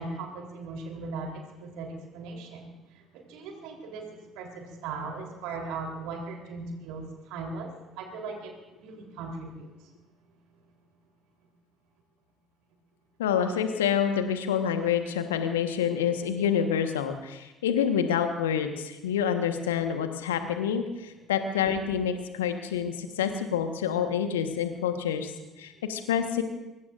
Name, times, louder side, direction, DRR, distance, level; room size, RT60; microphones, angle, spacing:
voice 1, 0.0-9.9 25.7-25.8, right 3 dB, 65° right, 2 dB, 3.7 m, -39 dB
voice 2, 13.2-25.3 25.6-26.4, left 8 dB, 75° left, 7 dB, 1.3 m, -27 dB
24.0 x 23.5 x 2.6 m, 1.0 s
figure-of-eight pair, 50°, 0 cm